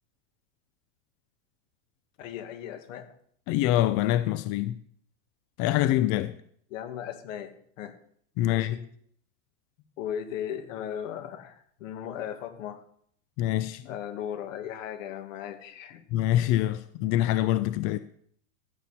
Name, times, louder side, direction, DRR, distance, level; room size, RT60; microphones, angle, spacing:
voice 1, 2.2-3.1 6.7-7.9 8.4-8.8 10.0-12.8 13.9-16.0, left 9 dB, 70° left, 2.1 m, -37 dB
voice 2, 3.5-4.8 5.6-6.3 8.4-8.8 13.4-13.8 16.1-18.0, left 14 dB, 40° left, 0.5 m, -25 dB
14.0 x 7.1 x 4.2 m
supercardioid pair, 130°, 40 cm